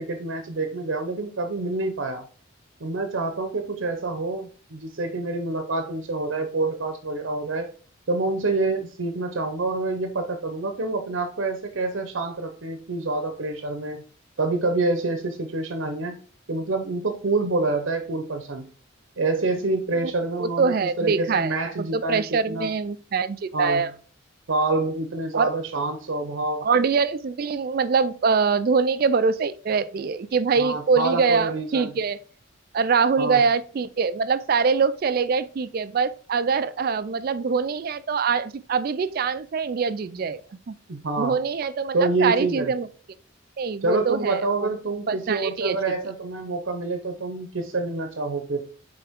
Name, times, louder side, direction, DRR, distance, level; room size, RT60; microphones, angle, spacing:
voice 1, 0.0-2.2 2.8-7.7 8.1-14.0 14.4-16.2 16.5-18.7 19.2-22.7 23.5-23.8 24.5-26.7 30.6-31.9 33.2-33.4 40.9-41.4 41.9-42.7 43.8-48.7, right 3 dB, 75° right, 0.7 m, -27 dB
voice 2, 20.4-23.9 25.3-25.5 26.6-32.2 32.7-40.4 40.7-40.8 41.2-42.9 43.6-44.7 45.1-45.8, right 5 dB, 50° right, 0.4 m, -24 dB
8.1 x 3.4 x 3.5 m
head